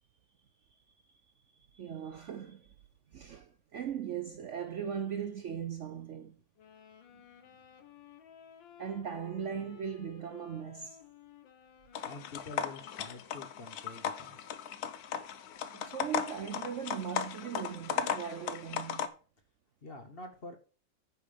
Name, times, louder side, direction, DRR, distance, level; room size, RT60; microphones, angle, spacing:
voice 1, 1.7-2.7 3.1-6.4 8.8-11.0 15.7-19.1, right 8 dB, 80° right, 0.6 m, -39 dB
sound 1, 6.6-13.6, left 9 dB, 85° left, 1.9 m, -56 dB
sound 2, 11.9-19.1, left 8 dB, 60° left, 1.1 m, -37 dB
voice 2, 12.0-14.5 19.8-20.6, left 2 dB, 35° left, 1.2 m, -47 dB
9.6 x 5.5 x 5.1 m
omnidirectional pair, 2.0 m